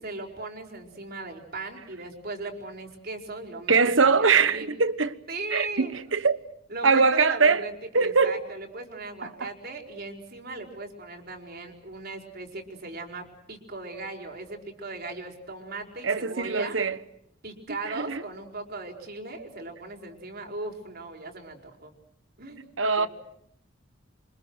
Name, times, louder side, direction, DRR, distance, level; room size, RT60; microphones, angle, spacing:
voice 1, 0.0-4.7 5.3-6.2 6.7-16.8 17.4-21.9 22.4-23.1, right 2 dB, 55° right, 4.9 m, -38 dB
voice 2, 3.7-5.2 5.5-6.4 6.8-7.6 7.9-8.4 9.2-9.3 16.0-17.0 17.8-18.2 22.8-23.1, right 4 dB, 80° right, 1.3 m, -22 dB
28.0 x 26.0 x 6.5 m
head